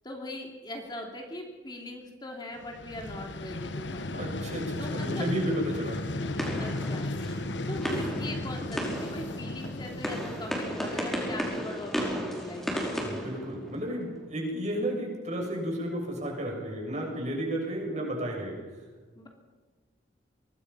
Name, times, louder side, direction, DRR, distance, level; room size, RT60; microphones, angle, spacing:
voice 1, 0.0-4.1 4.8-5.2 6.6-12.9 19.1-19.3, left 1 dB, 25° left, 1 dB, 3.1 m, -41 dB
Vehicle, 2.6-11.6, left 2 dB, 75° left, 1.3 m, -35 dB
voice 2, 4.1-6.2 13.0-18.6, right 1 dB, 40° right, 0 dB, 7.3 m, -32 dB
sound 1, 5.0-14.1, equal, ahead, 5.0 m, -35 dB
25.0 x 22.0 x 5.8 m, 1.4 s
head